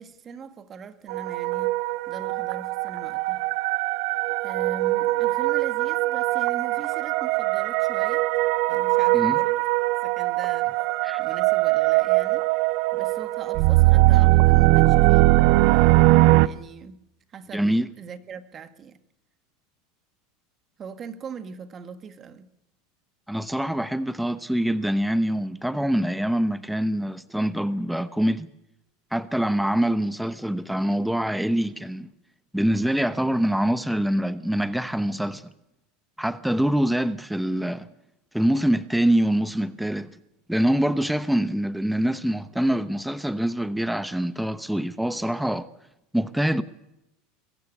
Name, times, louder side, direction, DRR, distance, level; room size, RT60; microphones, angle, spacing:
voice 1, 0.0-1.8 2.1-3.5 4.4-8.3 8.7-9.7 10.0-10.9 11.2-15.3 16.4-17.0 17.3-19.0 20.8-22.5, right 6 dB, 35° right, 1.8 m, -41 dB
sound 1, 1.1-16.5, right 20 dB, 65° right, 0.6 m, -21 dB
voice 2, 17.5-17.9 23.3-28.5 29.1-32.1 32.5-35.4 36.2-37.9 38.3-40.1 40.5-45.7 46.1-46.6, right 1 dB, 5° right, 1.0 m, -24 dB
22.5 x 14.0 x 8.3 m
hypercardioid pair, 95°, 0 cm